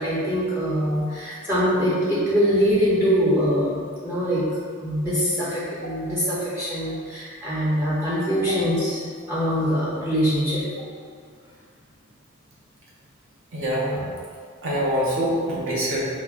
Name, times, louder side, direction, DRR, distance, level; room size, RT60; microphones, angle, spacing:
voice 1, 0.0-4.4 4.8-10.6, equal, 10° right, -10 dB, 0.5 m, -23 dB
voice 2, 13.5-14.1 14.6-16.1, equal, 65° right, -5 dB, 0.7 m, -25 dB
4.6 x 2.0 x 2.3 m, 2.1 s
head